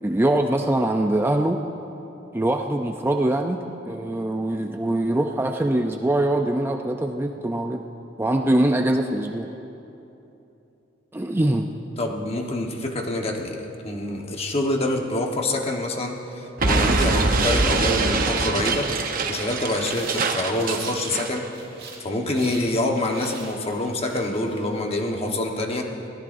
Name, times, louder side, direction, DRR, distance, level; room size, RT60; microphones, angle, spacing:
voice 1, 0.0-1.6 2.3-7.8 8.2-9.5 11.1-11.7, right 1 dB, 10° right, 4 dB, 0.4 m, -23 dB
voice 2, 12.0-18.9 19.3-21.5 22.0-25.9, left 1 dB, 30° left, 2 dB, 1.2 m, -26 dB
Explosion, 16.6-21.4, right 3 dB, 50° right, 0.9 m, -23 dB
sound 1, 19.8-22.1 22.3-24.9, right 4 dB, 65° right, 2.9 m, -43 dB
22.5 x 17.0 x 2.6 m, 2.9 s
head